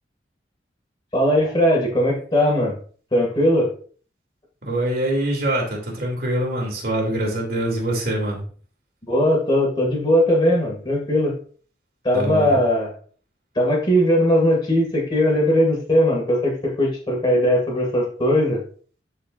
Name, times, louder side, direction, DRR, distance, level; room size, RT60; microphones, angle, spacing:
voice 1, 1.1-2.8 3.1-3.7 9.1-11.3 12.0-12.9 13.6-18.6, equal, 25° left, -2 dB, 2.2 m, -19 dB
voice 2, 4.6-8.5 12.1-12.6, right 1 dB, 55° right, -1 dB, 2.8 m, -24 dB
12.5 x 4.7 x 2.5 m, 0.43 s
head